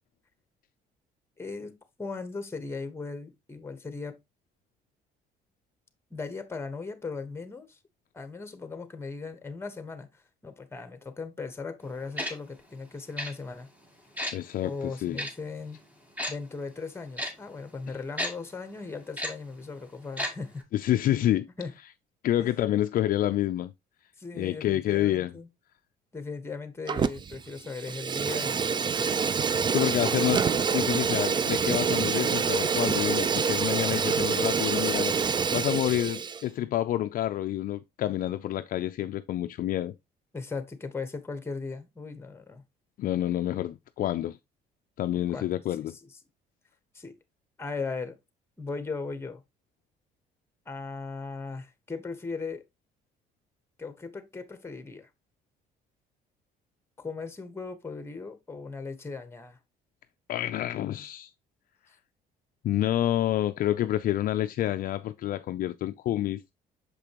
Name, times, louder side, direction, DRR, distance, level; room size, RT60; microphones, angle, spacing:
voice 1, 1.4-4.2 6.1-7.8 8.1-13.7 14.6-15.8 16.3-20.6 21.6-21.7 22.4-22.5 24.2-25.5 26.1-29.2 40.3-42.6 45.3-45.5 45.8-46.1 46.9-47.2 47.6-48.2 48.6-49.4 50.7-52.6 53.8-55.1 57.0-59.6, left 4 dB, 15° left, 1.2 m, -38 dB
Tick-tock, 12.2-12.3 13.2-13.3 14.2-14.3 15.2-15.3 16.2-16.3 17.2-17.3 18.2-18.3 19.2-19.3 20.2-20.3 20.6-20.7, left 1 dB, 10° right, 1.7 m, -31 dB
voice 2, 14.3-15.2 20.7-21.5 22.2-23.7 24.3-25.3 29.7-35.1 35.5-39.9 43.0-44.4 45.0-46.0 60.3-61.3 62.6-66.4, left 13 dB, 55° left, 0.4 m, -28 dB
Fire, 26.9-27.4 27.7-36.4, right 6 dB, 25° right, 0.4 m, -26 dB
6.7 x 5.0 x 2.9 m
cardioid pair, 110°, 17 cm